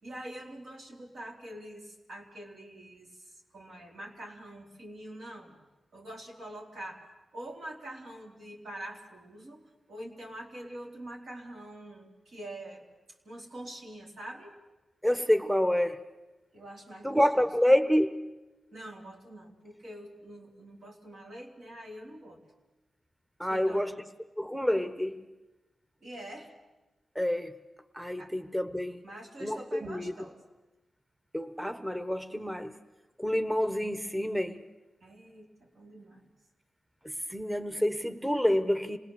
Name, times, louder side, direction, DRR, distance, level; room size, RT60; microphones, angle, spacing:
voice 1, 0.0-5.6 5.9-7.0 7.3-12.9 13.2-14.6 16.5-17.5 18.7-22.4 23.4-24.1 26.0-26.5 28.2-28.3 29.0-30.4 35.0-36.3, right 1 dB, 75° right, -1 dB, 3.4 m, -45 dB
voice 2, 15.0-16.0 17.0-18.3 23.4-23.9 24.4-25.3 27.1-27.5 27.9-29.0 29.4-30.1 31.3-32.8 33.2-34.6 37.0-39.0, equal, 10° right, 9 dB, 1.1 m, -28 dB
27.0 x 18.5 x 7.0 m, 1.1 s
cardioid pair, 50°, 0 cm